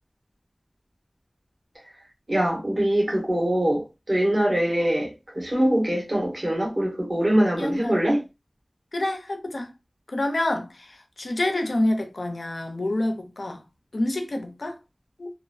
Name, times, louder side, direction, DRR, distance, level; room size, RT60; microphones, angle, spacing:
voice 1, 2.3-3.8 4.1-5.1 5.4-8.2, right 1 dB, 45° right, 1.3 m, -23 dB
voice 2, 7.6-8.0 8.9-9.7 10.1-13.6 13.9-14.8 15.2-15.3, left 1 dB, 80° left, 0.6 m, -27 dB
2.9 x 2.0 x 2.5 m
wide cardioid pair, 55°, 0 cm